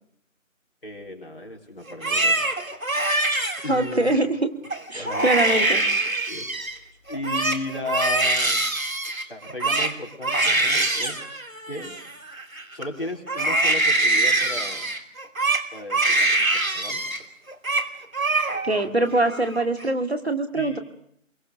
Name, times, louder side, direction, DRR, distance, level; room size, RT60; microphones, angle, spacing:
voice 1, 0.8-2.4 3.6-4.2 5.0-5.3 6.3-8.7 9.3-11.2 11.7-12.0 12.7-14.9 15.7-17.0 20.5-20.8, left 2 dB, 40° left, 0 dB, 4.2 m, -35 dB
Crying sobbing, 1.9-4.2 4.7-4.8 5.1-6.8 7.1-12.8 13.3-17.2 17.5-17.9 18.1-18.9 19.2-19.8, right 2 dB, 80° right, 3.0 m, -24 dB
voice 2, 3.7-4.5 4.9-5.8 18.6-20.8, right 2 dB, 50° right, 7 dB, 2.3 m, -23 dB
26.5 x 23.0 x 6.4 m, 0.66 s
figure-of-eight pair, 175°, 40 cm